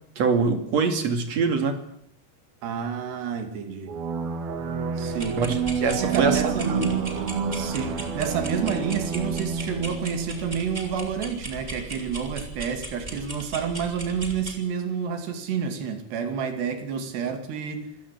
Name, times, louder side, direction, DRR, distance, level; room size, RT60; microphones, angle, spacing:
voice 1, 0.2-1.8 5.4-6.8, right 4 dB, 45° right, 3.2 m, -24 dB
voice 2, 2.6-4.0 5.0-5.5 6.0-7.1 7.5-17.9, right 6 dB, 80° right, 4.7 m, -29 dB
sound 1, 3.9-11.3, right 6 dB, 65° right, 3.8 m, -29 dB
sound 2, 5.1-14.6, right 1 dB, 10° right, 3.4 m, -38 dB
27.0 x 15.5 x 8.5 m
omnidirectional pair, 4.7 m